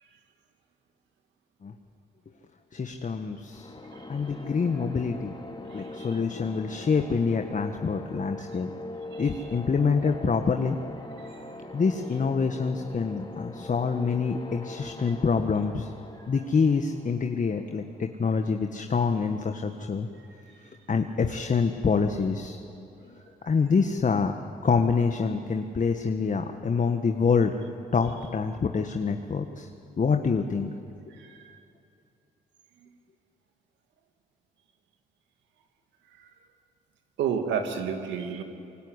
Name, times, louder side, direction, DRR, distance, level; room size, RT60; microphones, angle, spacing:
voice 1, 2.7-3.7 4.1-5.3 5.7-8.7 9.2-10.8 11.7-15.9 16.3-20.1 20.9-22.6 23.5-24.3 24.6-27.5 27.9-29.7 30.0-30.7, left 5 dB, 45° left, 5 dB, 1.7 m, -26 dB
sound 1, 3.5-18.2, left 2 dB, 25° left, 3.8 m, -42 dB
voice 2, 5.7-6.2 9.1-9.5 11.2-11.4 14.8-14.9 20.2-20.6 23.4-23.5 31.1-31.6 32.8-33.0 36.1-36.3 37.2-38.4, right 7 dB, 80° right, 5 dB, 2.6 m, -33 dB
25.5 x 23.5 x 9.9 m, 2.6 s
supercardioid pair, 50°, 18 cm